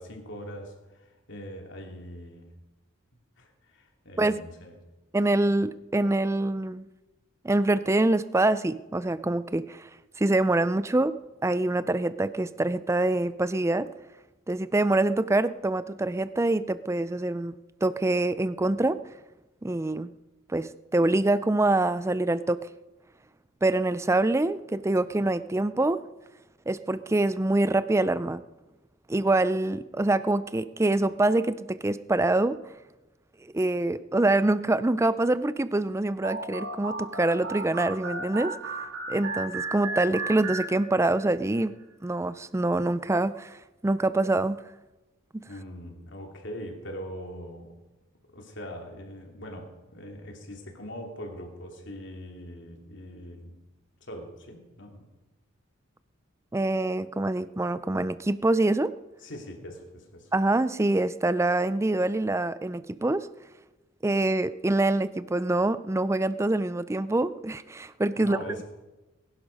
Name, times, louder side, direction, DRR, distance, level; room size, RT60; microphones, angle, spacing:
voice 1, 0.0-2.5 3.1-4.7 45.5-47.7 48.3-53.6 54.0-55.1 59.2-60.3 68.2-68.6, equal, 60° left, 2 dB, 2.9 m, -42 dB
voice 2, 5.1-6.9 7.4-9.9 10.2-11.1 11.4-13.9 14.5-17.5 17.8-19.0 19.6-20.1 20.5-22.7 23.6-26.0 26.7-28.4 29.1-32.6 33.4-38.6 39.1-41.7 42.0-43.6 43.8-44.6 45.3-45.4 56.5-58.9 60.3-63.3 64.0-68.4, right 2 dB, 15° right, 15 dB, 0.4 m, -25 dB
sound 1, 36.2-41.3, right 2 dB, 75° right, 1.9 m, -35 dB
21.0 x 11.0 x 5.3 m, 1.1 s
head